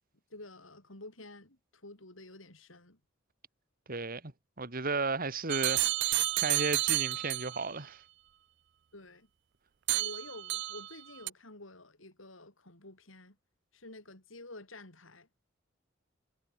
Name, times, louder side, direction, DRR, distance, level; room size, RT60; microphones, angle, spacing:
voice 1, 0.3-3.0 8.9-9.3 9.9-13.4 13.7-15.3, left 2 dB, 80° left, 6.0 m, -50 dB
voice 2, 3.9-4.3 4.6-8.0, right 3 dB, 45° right, 2.5 m, -34 dB
sound 1, 5.5-7.6 9.9-10.9 11.3-11.4, right 16 dB, 60° right, 0.5 m, -30 dB
head